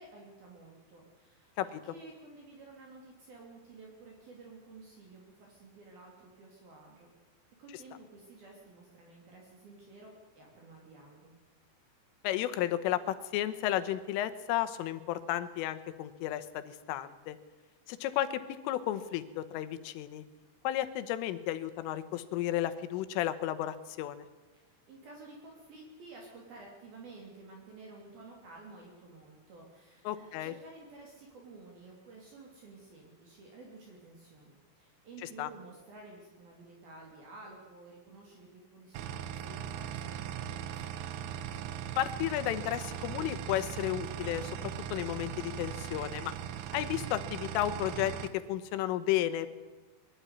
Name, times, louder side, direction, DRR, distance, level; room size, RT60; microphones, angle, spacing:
voice 1, 0.0-7.1 7.6-11.3 24.5-41.1, right 3 dB, 55° right, -1 dB, 4.4 m, -52 dB
voice 2, 12.2-17.4 17.9-20.2 20.7-24.3 30.1-30.5 35.4-35.5 42.0-46.3 46.7-49.6, left 13 dB, 85° left, 11 dB, 3.6 m, -33 dB
sound 1, 38.9-48.3, right 9 dB, 75° right, 2.7 m, -39 dB
22.0 x 12.5 x 9.8 m, 1.2 s
omnidirectional pair, 5.7 m